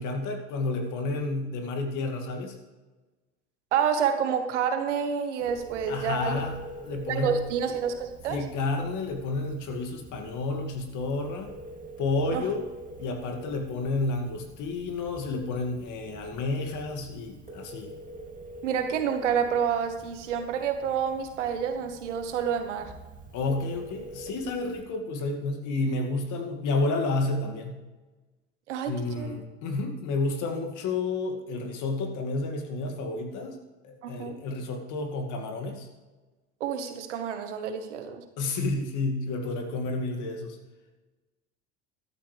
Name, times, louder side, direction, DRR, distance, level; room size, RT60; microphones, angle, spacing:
voice 1, 0.0-2.6 5.9-7.4 8.3-11.5 12.0-12.7 13.0-17.9 23.3-27.8 28.8-33.6 33.8-35.9 38.4-40.6, left 3 dB, 60° left, 4 dB, 2.3 m, -30 dB
voice 2, 3.7-6.4 7.1-8.4 12.3-12.5 18.6-22.9 28.7-29.4 34.0-34.4 36.6-38.2, right 7 dB, 85° right, 7 dB, 1.5 m, -28 dB
Telephone, 5.4-24.8, right 1 dB, 25° right, 2.5 m, -45 dB
13.5 x 12.0 x 3.4 m, 1.2 s
hypercardioid pair, 80°, 35 cm